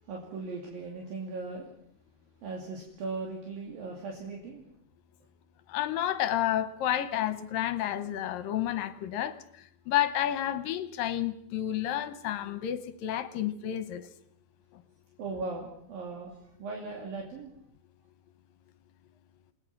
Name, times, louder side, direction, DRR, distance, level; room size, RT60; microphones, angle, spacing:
voice 1, 0.0-1.7 2.4-4.6 15.2-17.5, right 3 dB, 65° right, 0 dB, 4.5 m, -38 dB
voice 2, 5.7-14.1 14.7-14.8, left 12 dB, 70° left, 12 dB, 2.5 m, -31 dB
29.0 x 19.5 x 6.0 m, 0.67 s
omnidirectional pair, 4.5 m